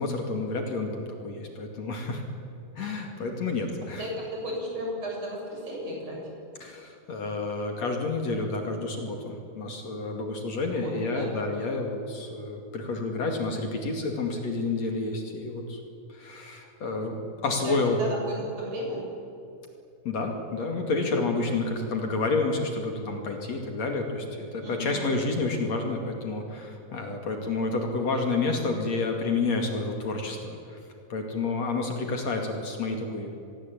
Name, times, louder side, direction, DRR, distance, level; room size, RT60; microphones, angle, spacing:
voice 1, 0.0-2.2 2.8-4.1 6.6-15.8 16.1-18.0 20.1-30.8 31.1-33.3, left 3 dB, 55° left, 3 dB, 3.4 m, -29 dB
voice 2, 4.0-6.2 10.7-11.3 17.6-19.0 24.6-25.1, equal, 45° right, -1 dB, 8.3 m, -34 dB
25.5 x 21.5 x 8.7 m, 2.7 s
omnidirectional pair, 3.9 m